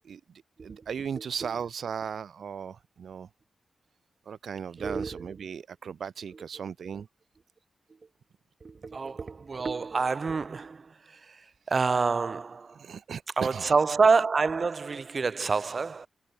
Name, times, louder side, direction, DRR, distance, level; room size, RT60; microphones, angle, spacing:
voice 1, 0.6-3.3 4.3-7.1 12.8-13.7, right 7 dB, 80° right, 0.5 m, -37 dB
voice 2, 4.8-5.3 8.6-11.4 11.7-12.8 13.4-16.1, right 4 dB, 45° right, 2.1 m, -27 dB
wide cardioid pair, 105°, 0 cm